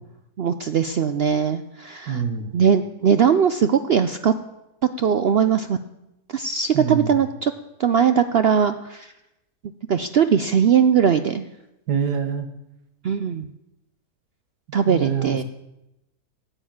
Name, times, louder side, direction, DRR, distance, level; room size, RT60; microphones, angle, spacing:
voice 1, 0.4-2.2 2.5-4.3 5.0-5.8 6.3-7.5 7.8-9.1 9.9-11.5 13.0-13.5 14.7-15.4, right 7 dB, 70° right, 10 dB, 0.5 m, -20 dB
voice 2, 2.1-2.6 6.7-7.1 11.9-12.5 14.9-15.4, right 7 dB, 90° right, 7 dB, 1.8 m, -25 dB
13.0 x 8.9 x 8.7 m, 0.91 s
omnidirectional pair, 1.7 m